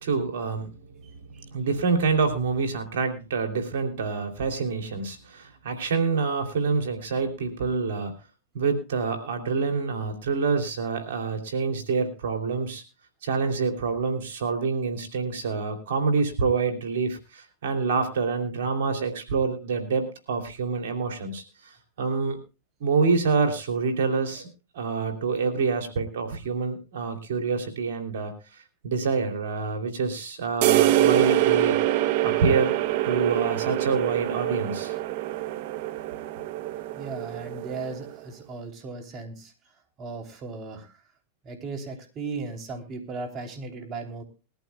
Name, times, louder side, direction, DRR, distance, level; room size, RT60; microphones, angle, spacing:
voice 1, 0.0-8.1 8.5-12.8 13.2-22.4 22.8-24.5 24.7-32.7 33.0-34.9 36.4-36.5, right 4 dB, 75° right, 5 dB, 3.1 m, -27 dB
voice 2, 1.0-1.4 24.8-24.9 36.9-39.5 40.0-40.9 41.4-44.2, right 4 dB, 35° right, 4 dB, 3.1 m, -37 dB
sound 1, 30.6-38.1, right 14 dB, 60° right, 0.8 m, -25 dB
21.5 x 14.0 x 2.3 m, 0.31 s
hypercardioid pair, 115°, 0 cm